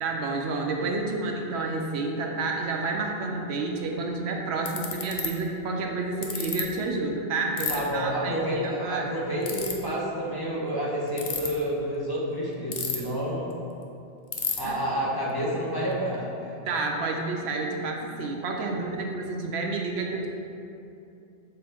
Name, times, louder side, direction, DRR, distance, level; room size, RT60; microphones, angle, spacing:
voice 1, 0.0-9.1 14.6-14.8 16.7-20.3, right 3 dB, 75° right, 1 dB, 0.8 m, -30 dB
Ratchet pawl, 4.0-4.1 4.7-5.3 6.2-6.6 7.6-7.8 9.4-9.7 11.1-11.5 12.7-13.2 13.5-13.6 13.8-13.9 14.3-14.6, left 6 dB, 50° left, 0.7 m, -29 dB
voice 2, 7.7-13.5 14.6-16.6, equal, 20° left, -7 dB, 0.9 m, -29 dB
6.8 x 4.2 x 3.4 m, 2.7 s
omnidirectional pair, 1.1 m